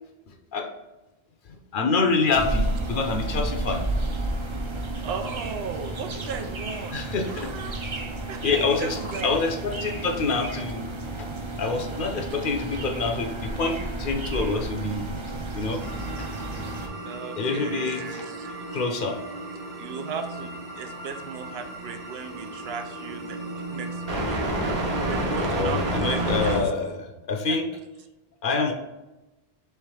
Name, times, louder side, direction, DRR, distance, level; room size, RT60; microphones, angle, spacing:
voice 1, 0.3-0.7 1.7-3.9 6.9-7.5 8.4-10.8 11.2-11.3 11.6-15.1 15.5-15.8 16.2-16.3 17.4-18.2 18.7-19.2 25.5-27.7 28.4-28.7, left 4 dB, 60° left, 3 dB, 0.7 m, -26 dB
sound 1, 2.3-16.9, right 2 dB, 40° right, 0.5 m, -32 dB
voice 2, 5.0-7.8 8.3-9.3 17.0-18.6 19.8-24.5 25.0-26.6 27.5-27.6, right 6 dB, 80° right, 6 dB, 0.8 m, -36 dB
sound 2, 15.8-26.6, right 1 dB, 65° right, 1.2 m, -31 dB
3.4 x 3.3 x 4.6 m, 1.1 s
omnidirectional pair, 1.0 m